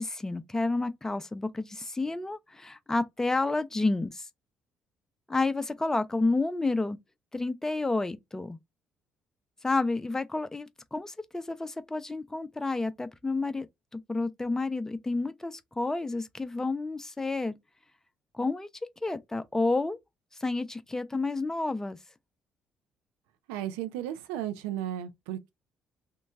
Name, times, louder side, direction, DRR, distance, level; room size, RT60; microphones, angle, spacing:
voice 1, 0.0-4.3 5.3-7.0 7.3-8.6 9.6-13.7 13.9-17.5 18.3-18.7 19.0-20.0 20.4-22.0, left 3 dB, 15° left, 0.5 m, -30 dB
voice 2, 23.5-25.5, right 11 dB, 75° right, 0.4 m, -34 dB
3.0 x 2.2 x 3.5 m
hypercardioid pair, 50°, 4 cm